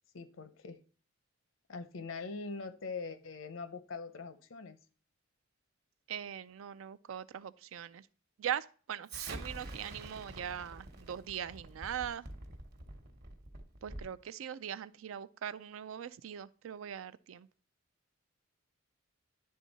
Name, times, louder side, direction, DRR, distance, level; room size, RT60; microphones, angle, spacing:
voice 1, 0.1-0.8 1.7-4.8, left 4 dB, 75° left, 0.7 m, -42 dB
voice 2, 6.1-8.1 8.4-12.3 13.8-17.5, right 9 dB, 90° right, 0.4 m, -41 dB
Explosion, 9.1-14.2, right 2 dB, 55° right, 1.1 m, -46 dB
10.5 x 3.6 x 4.1 m
head